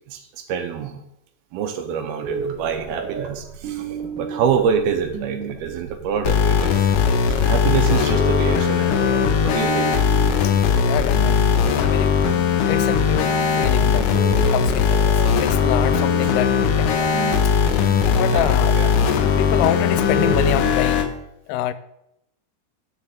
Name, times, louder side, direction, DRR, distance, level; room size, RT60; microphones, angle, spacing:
voice 1, 0.1-1.0 1.5-3.9 4.2-6.9 7.4-9.9 16.2-16.3 17.7-18.9, right 7 dB, 80° right, 6 dB, 2.7 m, -26 dB
sound 1, 2.2-20.7, right 5 dB, 65° right, 2.4 m, -32 dB
sound 2, 6.2-21.1, left 7 dB, 75° left, 2.2 m, -19 dB
voice 2, 10.9-11.4 11.7-12.2 12.7-17.1 18.1-18.8 19.2-21.1 21.5-21.7, left 12 dB, 90° left, 14 dB, 2.6 m, -26 dB
7.0 x 6.8 x 7.6 m, 0.82 s
omnidirectional pair, 4.5 m